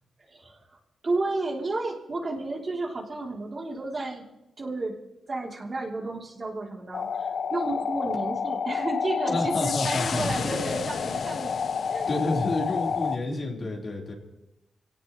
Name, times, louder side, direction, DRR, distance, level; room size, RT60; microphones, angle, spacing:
voice 1, 0.3-0.8 1.0-4.2 4.6-4.9 5.3-11.6 11.9-12.2 13.3-13.7, right 2 dB, 40° right, -1 dB, 3.2 m, -32 dB
sound 1, 6.9-13.2, left 6 dB, 65° left, 0.6 m, -29 dB
voice 2, 9.3-10.2 12.1-14.1, left 2 dB, 50° left, -2 dB, 3.9 m, -29 dB
25.0 x 17.5 x 3.2 m, 0.92 s
cardioid pair, 75°, 0 cm